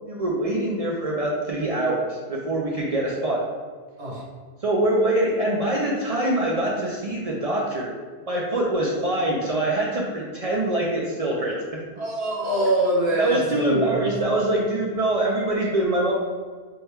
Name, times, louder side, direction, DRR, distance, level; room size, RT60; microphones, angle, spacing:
voice 1, 0.0-3.4 4.6-7.9 8.3-11.8 13.2-16.1, right 1 dB, 55° right, -3 dB, 0.4 m, -24 dB
voice 2, 12.0-14.1, right 1 dB, 75° right, -6 dB, 1.4 m, -24 dB
3.5 x 2.1 x 4.4 m, 1.5 s
omnidirectional pair, 1.2 m